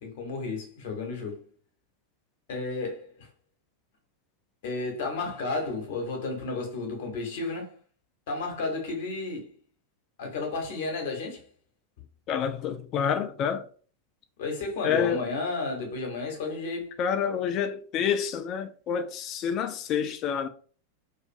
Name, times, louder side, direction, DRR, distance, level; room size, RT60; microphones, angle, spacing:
voice 1, 0.0-1.5 2.5-3.3 4.6-7.7 8.3-9.5 10.2-11.5 14.4-16.9, left 3 dB, 55° left, 0.9 m, -32 dB
voice 2, 12.3-13.6 14.8-15.2 17.0-20.5, left 7 dB, 35° left, 0.4 m, -28 dB
2.5 x 2.5 x 2.5 m
figure-of-eight pair, 90°, 0 cm